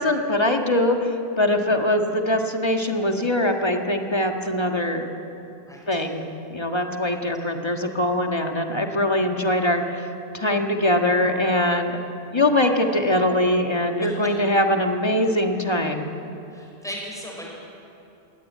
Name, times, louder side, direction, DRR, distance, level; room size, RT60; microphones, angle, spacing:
voice 1, 0.0-5.1 5.9-10.1 10.3-12.0 12.3-16.1, left 1 dB, 25° left, 3 dB, 1.7 m, -22 dB
voice 2, 16.5-17.5, equal, 5° left, -2 dB, 6.0 m, -36 dB
22.0 x 17.5 x 9.4 m, 2.8 s
omnidirectional pair, 1.2 m